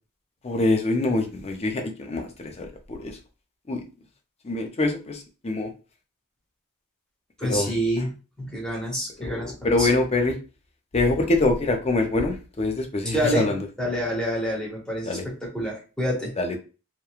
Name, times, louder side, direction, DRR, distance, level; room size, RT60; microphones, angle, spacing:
voice 1, 0.4-2.3 2.6-3.2 3.7-3.8 4.4-5.7 7.5-7.7 9.2-10.4 10.9-13.6 15.0-15.2 16.4-16.6, left 2 dB, 30° left, 4 dB, 0.5 m, -24 dB
voice 2, 7.4-9.9 13.1-16.3, right 1 dB, 5° left, -3 dB, 0.9 m, -28 dB
2.9 x 2.2 x 2.3 m, 0.33 s
head